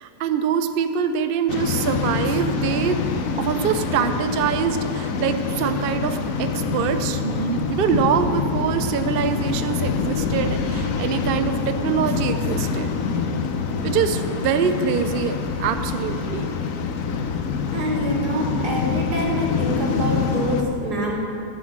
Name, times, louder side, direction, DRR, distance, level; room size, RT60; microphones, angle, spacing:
voice 1, 0.0-3.0 3.4-12.9 13.8-16.5, right 7 dB, 90° right, 8 dB, 0.5 m, -24 dB
Waves surf, 1.5-20.6, left 5 dB, 60° left, 1.0 m, -25 dB
voice 2, 17.7-21.2, right 1 dB, 70° right, -1 dB, 2.3 m, -26 dB
12.0 x 6.1 x 7.3 m, 2.9 s
omnidirectional pair, 1.8 m